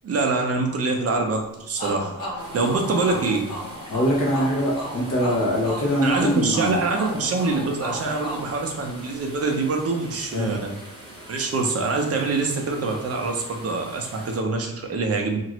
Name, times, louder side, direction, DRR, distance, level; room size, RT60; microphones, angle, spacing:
voice 1, 0.0-3.4 6.0-10.7 11.3-15.4, right 3 dB, 45° right, 2 dB, 0.5 m, -25 dB
sound 1, 1.8-9.4, right 1 dB, 75° left, 1.4 m, -35 dB
sound 2, 2.4-14.4, right 1 dB, 15° right, 0.9 m, -43 dB
voice 2, 3.9-6.8 10.3-10.6, equal, 45° left, -3 dB, 1.1 m, -23 dB
2.9 x 2.5 x 2.9 m, 0.96 s
wide cardioid pair, 160°, 35 cm